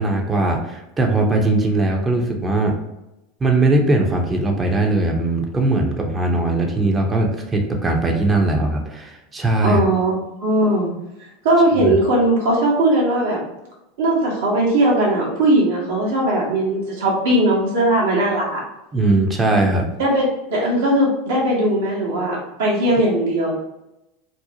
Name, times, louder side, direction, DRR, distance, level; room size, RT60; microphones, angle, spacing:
voice 1, 0.0-2.8 3.4-9.8 11.8-11.9 18.9-19.9, right 2 dB, 20° right, 2 dB, 0.5 m, -19 dB
voice 2, 9.6-10.1 10.4-10.9 11.4-13.4 14.0-18.6 20.0-23.5, right 1 dB, 75° right, -3 dB, 1.0 m, -18 dB
2.6 x 2.0 x 2.7 m, 0.91 s
hypercardioid pair, 85°, 0 cm